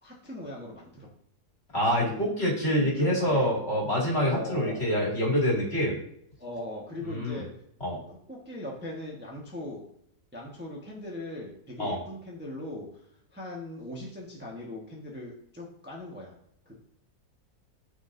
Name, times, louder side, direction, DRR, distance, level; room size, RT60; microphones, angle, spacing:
voice 1, 0.0-1.1 2.0-2.2 2.8-3.5 4.2-4.8 6.4-7.5 7.9-9.8 10.3-13.0 13.3-16.4 16.6-16.8, left 1 dB, 5° right, -3 dB, 1.1 m, -39 dB
voice 2, 1.7-6.0 7.1-7.4 7.8-8.0 11.8-12.0, equal, 40° left, -4 dB, 2.6 m, -26 dB
13.0 x 4.8 x 2.6 m, 0.72 s
omnidirectional pair, 1.7 m